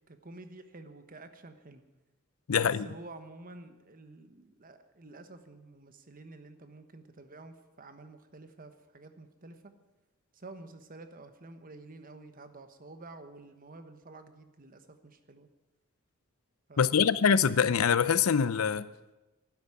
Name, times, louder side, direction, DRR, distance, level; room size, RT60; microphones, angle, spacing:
voice 1, 0.1-1.8 2.5-9.6 10.3-15.5 16.7-17.4, right 2 dB, 40° right, 1.2 m, -50 dB
voice 2, 2.5-2.8 16.8-18.9, left 7 dB, 85° left, 0.6 m, -24 dB
12.0 x 9.5 x 9.3 m
head